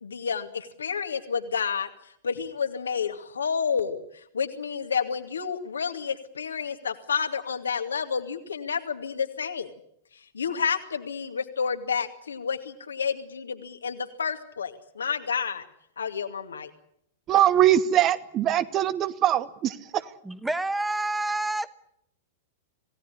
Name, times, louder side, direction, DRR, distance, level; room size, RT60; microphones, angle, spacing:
voice 1, 0.0-1.9 2.2-9.7 10.1-15.7 16.0-16.7, left 6 dB, 70° left, 7 dB, 2.3 m, -30 dB
voice 2, 17.3-20.1, right 11 dB, 30° right, 14 dB, 1.4 m, -22 dB
voice 3, 20.2-21.7, right 2 dB, 5° right, 13 dB, 1.3 m, -28 dB
27.0 x 17.5 x 9.9 m, 0.75 s
figure-of-eight pair, 95°, 0 cm